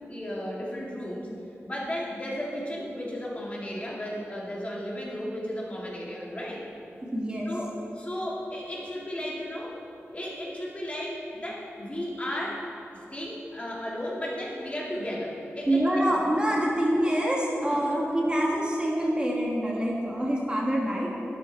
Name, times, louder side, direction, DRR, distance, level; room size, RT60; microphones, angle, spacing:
voice 1, 0.1-1.3 1.6-6.7 7.5-9.8 10.1-12.6 13.1-15.8 16.1-16.2 17.7-18.0, equal, 25° left, -4 dB, 2.3 m, -34 dB
voice 2, 7.1-7.5 15.7-21.1, right 1 dB, 20° right, -3 dB, 1.6 m, -26 dB
11.5 x 10.5 x 4.2 m, 2.8 s
wide cardioid pair, 100°, 5 cm